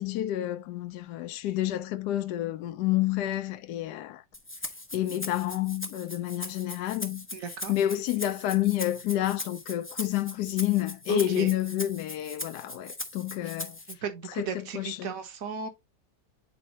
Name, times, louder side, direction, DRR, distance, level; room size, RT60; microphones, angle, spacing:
voice 1, 0.0-4.2 4.9-7.3 7.7-13.8 14.4-15.1, left 13 dB, 75° left, 1.1 m, -29 dB
Rattle (instrument), 4.3-13.9, left 2 dB, 15° left, 0.5 m, -40 dB
voice 2, 7.3-7.7 11.1-11.5 13.4-13.5 13.9-15.7, right 6 dB, 55° right, 1.6 m, -35 dB
9.4 x 4.3 x 2.8 m
omnidirectional pair, 1.9 m